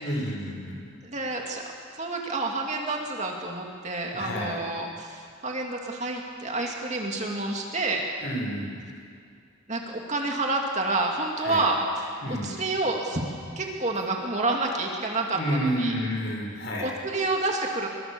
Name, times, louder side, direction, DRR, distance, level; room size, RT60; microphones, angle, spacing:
voice 1, 0.0-0.9 4.1-4.5 8.2-8.9 11.4-11.6 12.2-12.5 15.3-16.9, equal, 55° left, -2 dB, 7.2 m, -30 dB
voice 2, 1.0-1.6 2.0-8.0 9.7-13.2 13.6-16.0 16.8-17.9, right 2 dB, 30° right, 0 dB, 2.6 m, -29 dB
26.0 x 23.5 x 7.1 m, 2.1 s
head